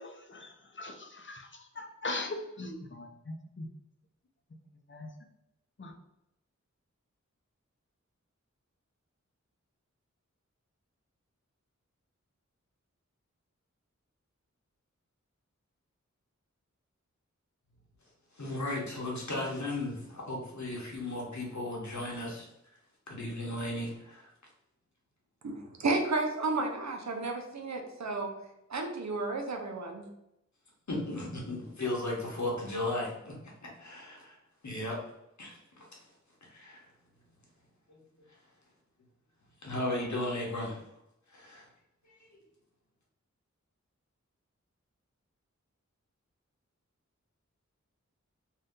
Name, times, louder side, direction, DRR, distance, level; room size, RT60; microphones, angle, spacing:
voice 1, 0.0-3.7 4.9-5.1 5.8-5.9, left 2 dB, 40° left, 4 dB, 0.5 m, -40 dB
voice 2, 18.3-22.5 23.1-24.3 30.9-33.4 33.8-34.4 34.6-35.0 35.4-36.1 36.4-36.8 37.9-38.0 39.6-40.8 41.3-41.7 42.1-42.3, left 1 dB, 70° left, -2 dB, 1.0 m, -35 dB
voice 3, 25.4-28.3 28.7-30.1, right 3 dB, 65° right, 3 dB, 0.5 m, -32 dB
2.7 x 2.3 x 3.5 m, 0.85 s
wide cardioid pair, 40°, 30 cm